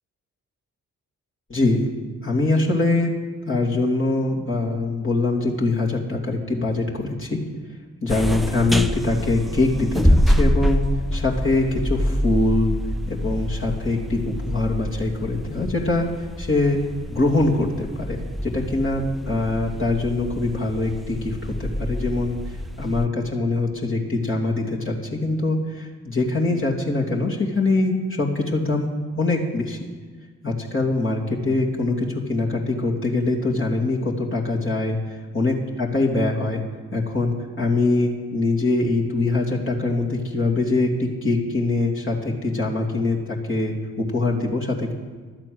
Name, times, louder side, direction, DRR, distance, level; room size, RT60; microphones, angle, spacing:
voice 1, 1.5-1.9 2.2-3.1 3.4-7.4 8.0-10.9 11.1-12.7 13.1-16.8 17.1-22.4 22.8-28.9 29.2-29.8 30.4-36.6 36.9-44.9, left 2 dB, 35° left, -2 dB, 2.8 m, -23 dB
sound 1, 8.1-23.1, equal, ahead, 0.9 m, -26 dB
12.0 x 8.8 x 8.0 m, 1.5 s
supercardioid pair, 45°, 35 cm